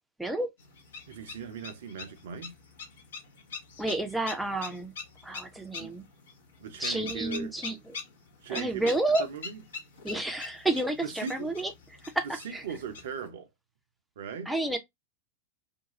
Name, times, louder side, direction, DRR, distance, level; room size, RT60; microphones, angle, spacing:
sound 1, 0.6-13.3, left 5 dB, 65° left, 0.8 m, -44 dB
voice 1, 1.1-2.6 5.8-5.9 6.6-7.5 8.4-8.9 9.2-9.6 11.0-11.5 12.4-13.5 14.2-14.5, right 7 dB, 60° right, 0.5 m, -39 dB
voice 2, 3.8-4.9 5.2-6.0 6.8-8.0 8.5-9.3 10.0-11.7 12.1-12.6 14.5-14.8, right 2 dB, 5° right, 0.5 m, -30 dB
2.5 x 2.3 x 2.7 m
figure-of-eight pair, 90°, 0 cm